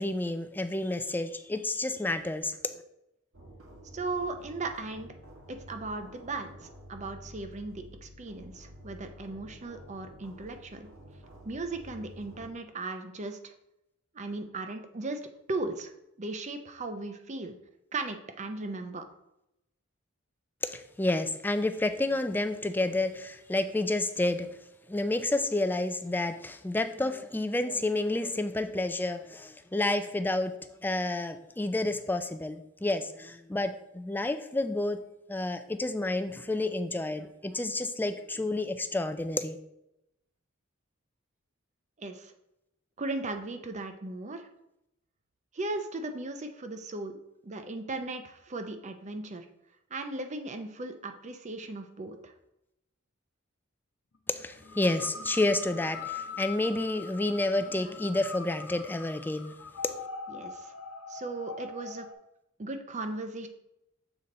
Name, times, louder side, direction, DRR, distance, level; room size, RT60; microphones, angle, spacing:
voice 1, 0.0-2.6 20.6-24.5 24.9-35.0 35.3-39.6 54.3-59.5, left 2 dB, 10° left, 9 dB, 0.4 m, -30 dB
sound 1, 3.3-12.5, equal, 90° right, 1.5 m, -50 dB
voice 2, 3.9-5.1 5.5-6.5 6.9-10.9 11.4-13.5 14.1-15.2 15.5-15.9 16.2-17.6 17.9-19.0 42.0-42.3 43.0-44.5 45.5-49.5 49.9-52.3 60.3-60.7 61.1-62.1 62.6-63.5, right 2 dB, 35° right, 7 dB, 0.6 m, -37 dB
sound 2, 54.6-62.1, left 5 dB, 80° left, 0.8 m, -42 dB
7.0 x 3.9 x 4.1 m, 0.85 s
head